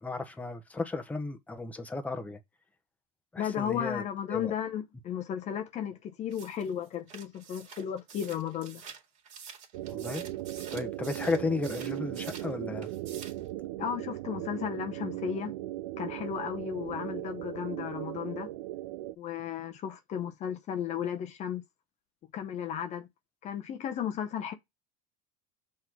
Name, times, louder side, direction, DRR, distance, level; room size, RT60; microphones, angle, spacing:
voice 1, 0.0-2.4 3.3-4.0 4.3-4.5 9.9-10.3 10.7-12.9, left 3 dB, 10° left, 0.9 m, -34 dB
voice 2, 3.4-8.8 13.8-15.5 16.0-18.5 19.2-21.6 22.3-23.1 23.4-24.5, left 9 dB, 40° left, 0.7 m, -34 dB
sound 1, 6.3-12.5 12.8-13.5, right 6 dB, 40° right, 2.1 m, -48 dB
sound 2, 9.7-19.1, right 15 dB, 80° right, 0.4 m, -38 dB
5.9 x 3.2 x 5.8 m
supercardioid pair, 110°, 18 cm